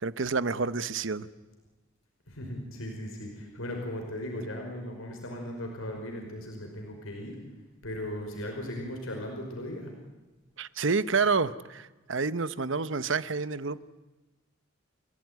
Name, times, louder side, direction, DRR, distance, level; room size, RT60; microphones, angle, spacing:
voice 1, 0.0-1.3 10.6-13.8, right 4 dB, 65° right, 15 dB, 0.9 m, -29 dB
voice 2, 2.3-7.4 7.8-9.9, left 1 dB, 80° left, 1 dB, 5.3 m, -37 dB
30.0 x 17.5 x 9.5 m, 1.1 s
head